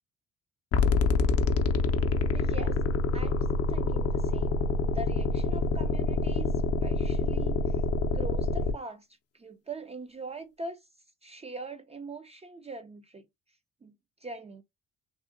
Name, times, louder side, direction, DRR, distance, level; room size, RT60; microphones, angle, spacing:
sound 1, 0.7-8.7, left 3 dB, 55° left, 0.5 m, -26 dB
voice 1, 2.3-6.5 6.8-7.8 8.1-9.1 9.3-10.9 11.2-13.2 13.8-13.9 14.2-14.6, right 2 dB, 20° right, 0.4 m, -42 dB
3.5 x 2.1 x 2.4 m
cardioid pair, 90°, 30 cm